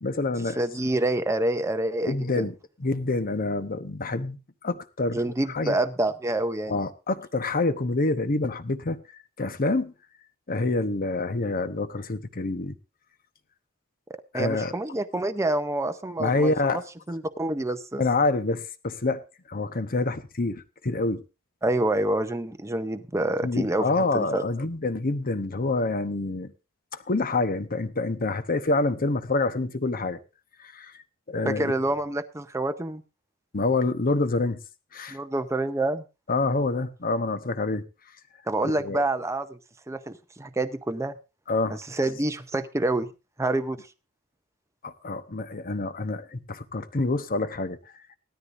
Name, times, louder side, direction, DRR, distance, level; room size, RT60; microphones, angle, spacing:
voice 1, 0.0-0.6 2.1-2.5 2.8-5.2 5.5-5.7 6.7-9.0 9.4-9.9 10.5-12.8 14.3-14.7 16.2-16.8 18.0-21.2 23.4-26.5 27.1-30.2 30.6-30.9 31.3-31.7 33.5-34.6 34.9-35.2 36.3-37.8 38.6-39.0 41.5-41.8 44.8-47.8, left 3 dB, 40° left, 0.9 m, -27 dB
voice 2, 0.6-2.5 5.1-6.8 14.3-16.8 17.1-18.0 21.6-24.4 31.5-33.0 35.1-36.0 38.5-39.6 39.9-41.1 41.9-43.1 43.4-43.8, right 2 dB, 15° right, 0.6 m, -27 dB
18.0 x 13.0 x 2.6 m
head